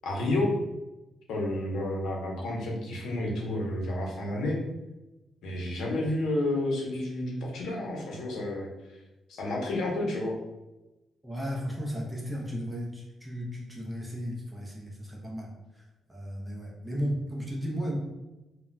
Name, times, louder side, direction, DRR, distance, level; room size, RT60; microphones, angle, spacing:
voice 1, 0.0-0.6 1.3-4.6 5.4-8.7 9.3-10.4, left 1 dB, 80° left, -1 dB, 0.7 m, -30 dB
voice 2, 11.2-15.5 15.7-15.8 16.1-18.0, equal, 5° right, -2 dB, 0.5 m, -34 dB
2.2 x 2.1 x 3.7 m, 1.0 s
cardioid pair, 175°, 0 cm